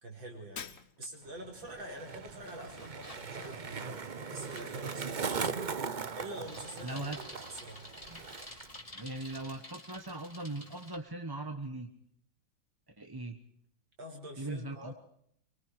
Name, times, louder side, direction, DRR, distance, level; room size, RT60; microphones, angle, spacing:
voice 1, 0.0-5.7 6.1-7.1 7.5-7.8 14.0-14.9, right 1 dB, 75° right, 2 dB, 5.4 m, -46 dB
Shatter, 0.6-1.4, left 6 dB, 40° left, 1.1 m, -45 dB
Skateboard, 1.2-8.8 9.0-9.6, right 5 dB, 40° right, 0.6 m, -39 dB
Bicycle, 1.5-11.0, left 1 dB, 15° left, 3.4 m, -52 dB
voice 2, 6.8-7.2 8.1-8.2 8.9-11.9 13.0-13.4 14.4-14.9, right 2 dB, 15° right, 5 dB, 1.0 m, -39 dB
25.0 x 24.0 x 4.8 m, 0.66 s
omnidirectional pair, 2.1 m